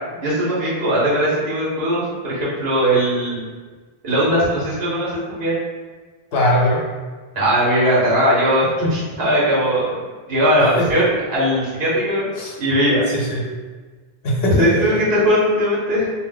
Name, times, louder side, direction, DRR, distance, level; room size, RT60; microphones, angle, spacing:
voice 1, 0.2-3.4 4.0-5.6 7.3-9.9 10.3-11.0 11.3-12.2 12.6-13.0 14.6-16.1, equal, 75° right, -7 dB, 1.2 m, -19 dB
voice 2, 6.3-6.8 10.6-11.0 12.4-12.5 13.1-13.4 14.2-15.0, equal, 70° left, -3 dB, 1.0 m, -20 dB
2.7 x 2.1 x 3.8 m, 1.3 s
omnidirectional pair, 1.0 m